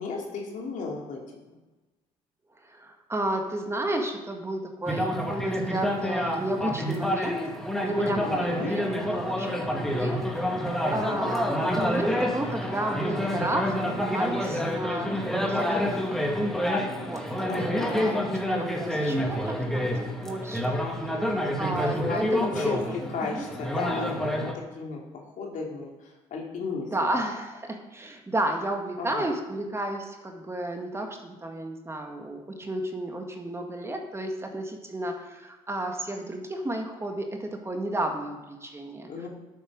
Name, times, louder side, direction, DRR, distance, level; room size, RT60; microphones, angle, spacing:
voice 1, 0.0-1.4 8.0-8.7 11.0-11.3 17.5-18.2 22.1-27.1 29.0-29.3 39.1-39.3, left 4 dB, 60° left, -1 dB, 2.9 m, -34 dB
voice 2, 2.6-7.4 7.8-16.2 16.9-18.2 18.5-22.8 23.2-23.5 26.9-39.3, right 1 dB, 20° right, 3 dB, 1.9 m, -32 dB
sound 1, 4.9-24.5, equal, 5° left, 2.0 m, -28 dB
9.1 x 8.4 x 6.5 m, 1.1 s
supercardioid pair, 75°, 14 cm